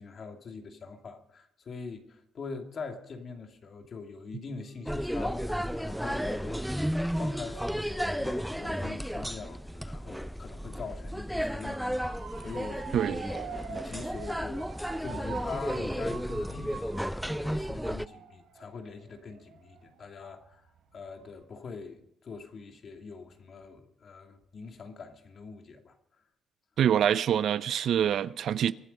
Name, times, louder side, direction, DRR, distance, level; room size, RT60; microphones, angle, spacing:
voice 1, 0.0-6.9 7.2-13.2 13.7-14.7 15.0-20.6 20.9-26.0, left 4 dB, 50° left, 2.5 m, -43 dB
Wind instrument woodwind instrument, 4.5-8.1, right 6 dB, 45° right, 2.6 m, -57 dB
sound 1, 4.9-18.1, equal, ahead, 0.4 m, -33 dB
Motor vehicle (road) / Siren, 11.6-20.6 21.0-21.4, right 6 dB, 85° right, 5.4 m, -44 dB
voice 2, 26.8-28.7, right 9 dB, 65° right, 0.6 m, -25 dB
24.5 x 8.3 x 5.4 m
cardioid pair, 90°, 0 cm